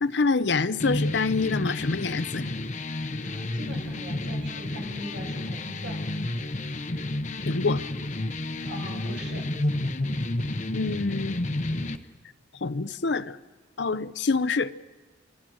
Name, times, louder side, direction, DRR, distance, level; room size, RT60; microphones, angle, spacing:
voice 1, 0.0-2.5 7.4-7.8 10.7-11.5 12.6-13.4 13.8-14.7, left 4 dB, 60° left, 15 dB, 0.7 m, -26 dB
sound 1, 0.8-12.0, left 1 dB, 40° left, 0.9 m, -30 dB
voice 2, 3.2-6.0 8.6-9.4, right 1 dB, 65° right, 1 dB, 6.2 m, -40 dB
27.0 x 21.5 x 6.3 m, 1.3 s
head